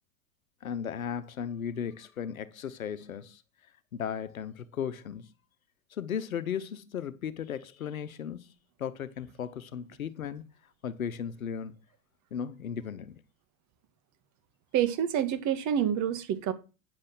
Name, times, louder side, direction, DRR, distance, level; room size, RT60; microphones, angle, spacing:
voice 1, 0.6-3.4 3.9-5.3 5.9-8.5 8.8-10.4 10.8-11.7 12.3-13.2, left 8 dB, 85° left, 1.0 m, -36 dB
voice 2, 14.7-16.5, right 9 dB, 45° right, 2.0 m, -27 dB
9.6 x 7.6 x 6.1 m
hypercardioid pair, 85°, 41 cm